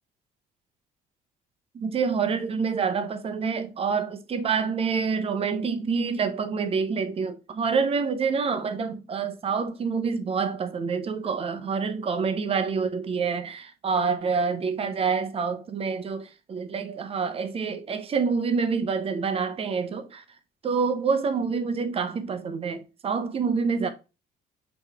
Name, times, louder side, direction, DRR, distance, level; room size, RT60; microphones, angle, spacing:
voice 1, 1.7-20.2 20.6-23.9, right 5 dB, 35° right, 0.7 m, -27 dB
4.8 x 3.1 x 3.4 m
cardioid pair, 110°, 17 cm